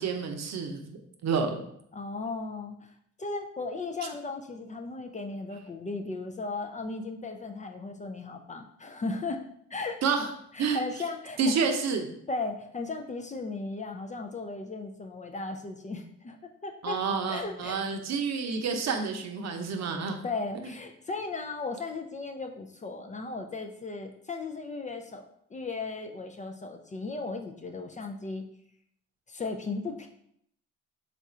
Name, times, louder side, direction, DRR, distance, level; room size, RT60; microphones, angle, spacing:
voice 1, 0.0-1.6 10.0-10.3 10.6-10.8 11.4-12.1 16.8-20.2, right 5 dB, 60° right, 4 dB, 0.7 m, -29 dB
voice 2, 1.9-9.4 9.7-10.0 10.5-11.4 12.3-17.0 17.3-17.8 20.2-25.2 25.5-28.4 29.3-30.1, left 3 dB, 25° left, 4 dB, 0.4 m, -36 dB
3.6 x 2.5 x 4.2 m, 0.70 s
cardioid pair, 90°, 30 cm